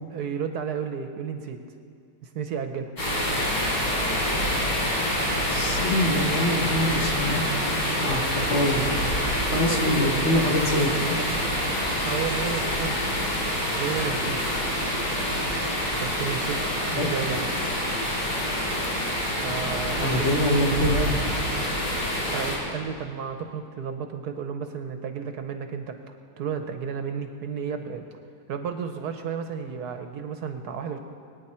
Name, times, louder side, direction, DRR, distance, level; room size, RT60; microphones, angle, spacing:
voice 1, 0.1-1.6 2.2-2.9 9.5-9.9 12.0-13.1 13.7-14.4 16.0-17.5 19.4-20.3 22.3-28.0 28.5-31.0, right 6 dB, 65° right, 6 dB, 1.2 m, -32 dB
sound 1, 3.0-22.6, equal, 75° left, 4.3 m, -26 dB
voice 2, 5.5-7.5 7.8-8.2 8.5-8.8 9.5-11.2 17.0-17.1 20.0-21.2, left 1 dB, 40° left, 0 dB, 1.4 m, -25 dB
22.0 x 9.5 x 4.3 m, 2.3 s
omnidirectional pair, 2.0 m